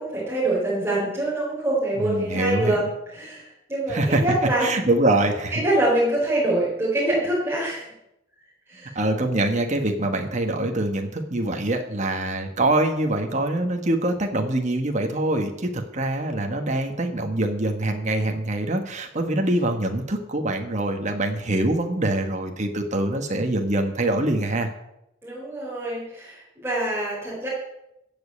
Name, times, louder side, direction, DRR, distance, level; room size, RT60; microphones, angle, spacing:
voice 1, 0.0-4.8 5.5-7.8 8.7-9.0 25.2-27.5, right 1 dB, 15° right, -6 dB, 4.3 m, -25 dB
voice 2, 2.0-2.9 3.9-4.2 4.6-5.6 8.9-24.7, right 1 dB, 35° right, 4 dB, 1.3 m, -24 dB
15.0 x 5.3 x 8.4 m, 0.85 s
head